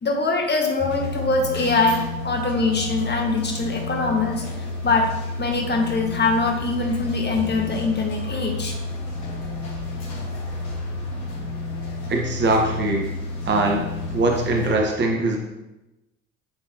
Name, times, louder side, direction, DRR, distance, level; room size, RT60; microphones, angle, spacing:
voice 1, 0.0-5.1 5.4-8.8, left 3 dB, 30° left, 2 dB, 1.5 m, -23 dB
sound 1, 0.8-14.8, left 2 dB, 75° left, 1.7 m, -31 dB
voice 2, 12.1-13.1 13.5-13.9 14.1-15.4, right 2 dB, 30° right, 1 dB, 1.1 m, -22 dB
10.0 x 3.8 x 2.8 m, 0.98 s
hypercardioid pair, 60°, 36 cm